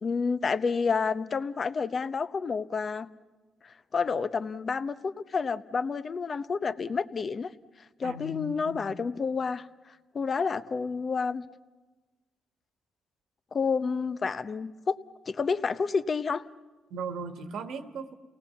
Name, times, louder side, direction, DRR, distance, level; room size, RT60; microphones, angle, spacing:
voice 1, 0.0-3.1 3.6-7.5 8.0-9.7 10.1-11.4 13.5-15.0 15.3-16.5, left 5 dB, 40° left, 0.8 m, -29 dB
voice 2, 8.0-8.9 16.9-18.2, right 3 dB, 75° right, 1.6 m, -38 dB
29.0 x 18.5 x 7.1 m
cardioid pair, 85°, 0 cm